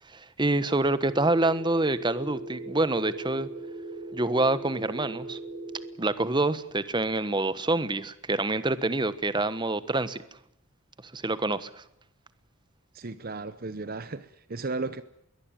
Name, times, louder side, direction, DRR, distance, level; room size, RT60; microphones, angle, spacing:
voice 1, 0.1-3.5 4.1-5.4 6.0-10.2 11.1-11.7, right 2 dB, 20° right, 14 dB, 1.2 m, -26 dB
sound 1, 1.0-5.9, right 2 dB, 75° right, 5.5 m, -39 dB
voice 2, 12.9-15.0, right 3 dB, 45° right, 14 dB, 0.8 m, -35 dB
22.5 x 18.5 x 9.1 m, 0.78 s
head